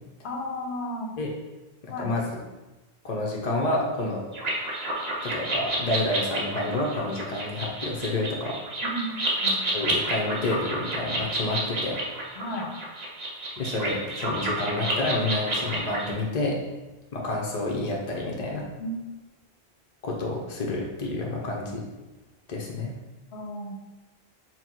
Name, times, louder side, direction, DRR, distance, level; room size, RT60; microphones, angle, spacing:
voice 1, 0.2-1.1 1.9-2.1 8.8-9.7 12.3-12.7 18.8-18.9 23.3-23.7, equal, 80° left, 1 dB, 0.9 m, -33 dB
voice 2, 1.8-2.2 3.0-4.2 5.2-8.6 9.7-12.0 13.6-16.6 17.1-18.7 20.0-21.8 22.5-22.9, left 2 dB, 50° left, -2 dB, 0.6 m, -29 dB
sound 1, 4.3-16.1, right 1 dB, 45° right, 0.8 m, -30 dB
4.2 x 2.0 x 4.4 m, 1.1 s
omnidirectional pair, 1.1 m